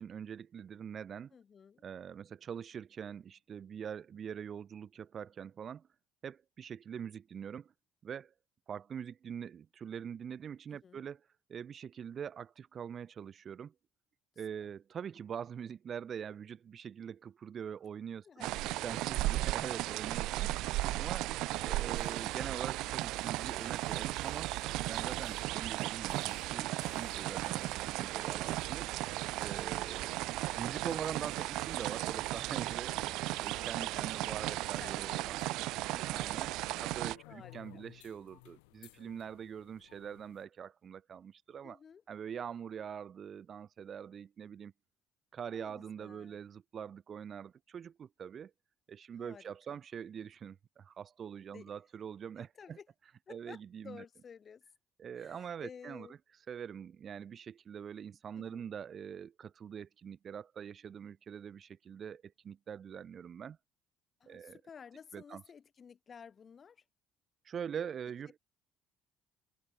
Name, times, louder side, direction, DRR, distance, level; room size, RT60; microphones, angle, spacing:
voice 1, 0.0-1.3 1.8-5.9 6.2-7.7 8.0-8.3 8.7-11.2 11.5-13.7 14.4-18.6 18.8-21.3 21.6-24.5 24.9-28.9 29.4-30.2 30.5-35.4 35.7-36.5 36.8-41.8 42.1-44.7 45.3-48.5 48.9-52.8 53.3-54.0 55.0-56.1 56.5-63.6 64.3-64.6 65.1-65.4 67.4-68.4, right 8 dB, 45° right, 1.2 m, -44 dB
voice 2, 1.3-1.8 10.7-11.1 14.6-14.7 18.2-19.0 20.9-21.1 21.4-21.7 27.0-27.4 33.7-35.5 35.9-36.1 37.2-37.8 41.6-42.0 45.5-46.4 49.1-49.8 51.5-51.7 52.4-52.9 53.3-54.6 55.1-56.2 58.3-58.7 64.2-66.8, left 6 dB, 40° left, 6.5 m, -54 dB
sound 1, 18.4-37.2, right 18 dB, 70° right, 0.8 m, -35 dB
sound 2, 21.4-40.5, left 30 dB, 75° left, 3.8 m, -60 dB
hypercardioid pair, 55°, 0 cm